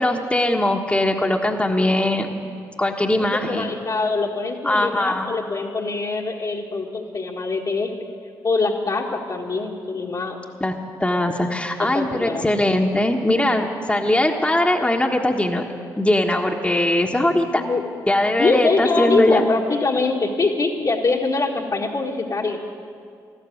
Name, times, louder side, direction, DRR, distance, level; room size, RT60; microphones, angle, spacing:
voice 1, 0.0-2.3 2.8-3.7 4.6-5.3 10.6-15.6 16.0-17.6 18.1-19.4, left 1 dB, 10° left, 1 dB, 1.5 m, -20 dB
voice 2, 3.2-7.9 8.4-10.4 11.8-12.5 17.6-17.8 18.4-22.6, left 3 dB, 40° left, -3 dB, 1.7 m, -23 dB
13.5 x 12.5 x 8.0 m, 2.2 s
hypercardioid pair, 45°, 10 cm